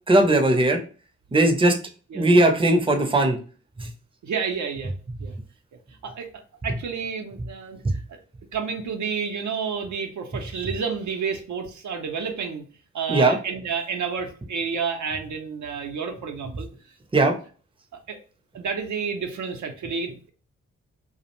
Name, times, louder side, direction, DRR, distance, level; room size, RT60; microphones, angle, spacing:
voice 1, 0.1-0.8 1.3-1.8 2.1-3.4 3.8-3.9 13.1-13.4 17.1-17.3, right 1 dB, 15° right, 5 dB, 0.6 m, -18 dB
voice 2, 4.2-4.9 5.2-5.3 6.0-6.3 6.6-7.8 8.1-8.2 8.5-12.6 12.9-16.7 17.1-17.3 18.1-18.2 18.5-20.3, right 6 dB, 70° right, 4 dB, 0.6 m, -30 dB
2.4 x 2.0 x 2.9 m, 0.38 s
supercardioid pair, 50°, 31 cm